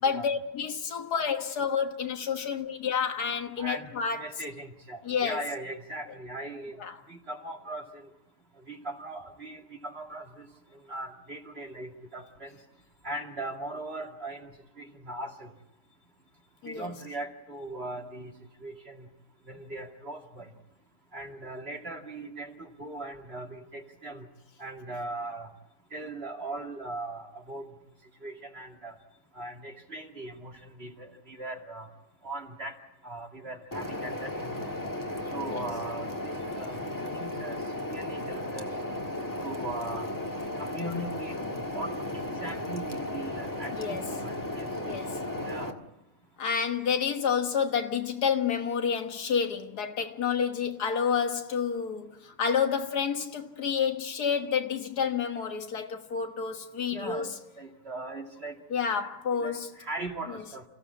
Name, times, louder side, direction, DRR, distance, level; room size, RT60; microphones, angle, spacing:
voice 1, 0.0-4.2 5.0-5.4 6.8-7.0 16.6-16.9 35.3-35.6 43.7-44.0 44.9-45.2 46.4-57.3 58.7-59.7 60.3-60.4, left 6 dB, 85° left, 2.0 m, -29 dB
voice 2, 3.6-6.8 7.1-8.0 8.7-10.5 10.9-12.5 13.0-14.5 14.8-15.5 16.6-18.3 18.6-19.1 19.5-20.5 21.1-24.3 24.6-25.5 25.9-27.7 28.2-28.9 29.4-31.9 32.2-32.7 33.0-34.6 35.3-36.1 36.5-37.6 37.9-38.9 39.4-40.1 40.6-41.9 42.4-44.7 45.4-45.8 56.9-57.3 57.6-58.5 59.3-60.6, right 2 dB, 40° right, 2.7 m, -39 dB
sound 1, 33.7-45.7, left 1 dB, 15° left, 1.6 m, -35 dB
28.5 x 15.5 x 8.5 m
omnidirectional pair, 1.6 m